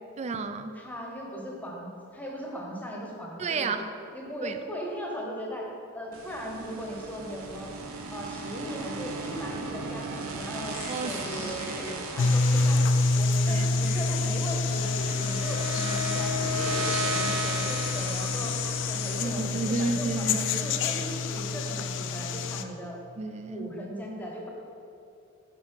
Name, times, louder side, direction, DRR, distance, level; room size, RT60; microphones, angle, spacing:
voice 1, 0.2-0.8 3.4-3.9 4.4-4.6 10.9-11.5 13.5-14.0 15.8-16.3 19.2-20.4 20.6-21.0 23.2-23.7, right 3 dB, 30° right, 9 dB, 0.3 m, -32 dB
voice 2, 0.7-3.8 4.1-5.7 5.9-7.7 8.1-12.8 13.1-15.6 16.1-18.6 18.9-23.0 23.5-24.5, equal, 10° left, -1 dB, 1.0 m, -38 dB
sound 1, 6.1-20.3, right 1 dB, 80° right, 0.7 m, -36 dB
sound 2, 10.7-19.2, left 4 dB, 30° left, 0.7 m, -44 dB
sound 3, 12.2-22.6, left 3 dB, 60° left, 0.4 m, -27 dB
7.6 x 4.7 x 4.4 m, 2.6 s
head